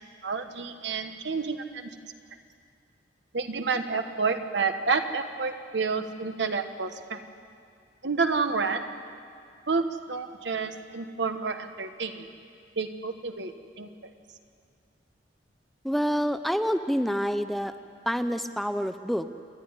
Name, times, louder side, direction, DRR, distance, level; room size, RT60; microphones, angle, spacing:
voice 1, 0.2-1.9 3.3-7.2 8.0-9.0 9.7-12.3 12.8-14.1, right 4 dB, 70° right, 7 dB, 1.3 m, -29 dB
voice 2, 15.8-17.7 18.1-19.3, equal, ahead, 9 dB, 0.5 m, -27 dB
27.5 x 11.5 x 9.7 m, 2.3 s
head